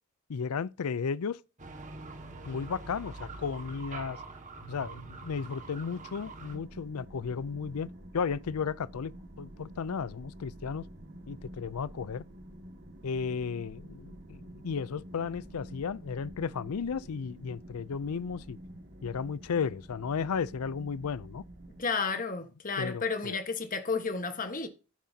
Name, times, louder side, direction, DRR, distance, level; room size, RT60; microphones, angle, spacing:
voice 1, 0.3-1.4 2.4-4.2 4.7-7.9 8.1-10.8 11.3-12.2 13.0-18.6 19.0-21.4 22.8-23.4, left 6 dB, 85° left, 0.5 m, -34 dB
sound 1, 1.6-6.6, right 3 dB, 35° right, 1.8 m, -44 dB
sound 2, 6.5-21.8, right 1 dB, 50° right, 2.0 m, -48 dB
voice 2, 21.8-24.7, left 4 dB, 40° left, 1.4 m, -32 dB
10.5 x 9.4 x 2.8 m
head